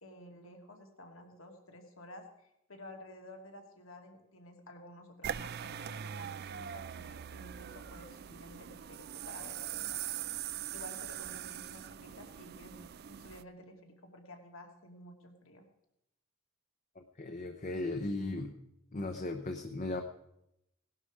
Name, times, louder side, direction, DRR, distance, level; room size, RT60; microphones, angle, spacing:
voice 1, 0.0-10.2 10.7-15.6, left 1 dB, 70° left, 3 dB, 2.4 m, -52 dB
sound 1, 5.2-13.4, right 10 dB, 50° right, 0.4 m, -42 dB
voice 2, 17.0-18.6 18.9-20.0, left 2 dB, 35° left, 5 dB, 0.9 m, -37 dB
18.0 x 11.5 x 4.9 m, 0.82 s
head